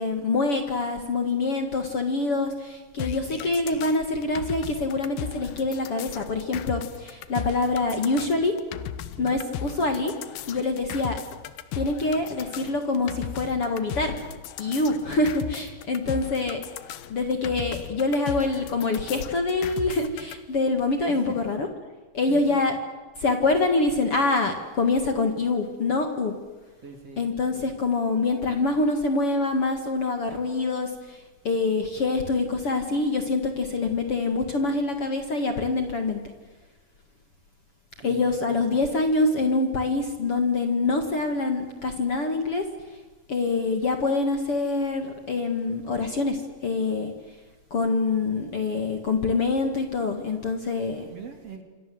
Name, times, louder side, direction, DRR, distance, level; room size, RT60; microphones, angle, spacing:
voice 1, 0.0-8.6 9.2-10.1 10.5-11.2 11.7-14.1 14.6-16.6 17.1-21.7 22.1-22.7 23.2-26.3 27.2-36.2 38.0-42.7 43.3-47.4 47.7-51.1, left 3 dB, 45° left, 6 dB, 2.5 m, -25 dB
sound 1, 3.0-20.4, left 10 dB, 90° left, 3.2 m, -37 dB
voice 2, 22.3-22.6 26.8-27.3 38.0-38.3 51.1-51.6, right 5 dB, 40° right, 6 dB, 3.6 m, -41 dB
28.0 x 25.5 x 7.9 m, 1.3 s
omnidirectional pair, 4.4 m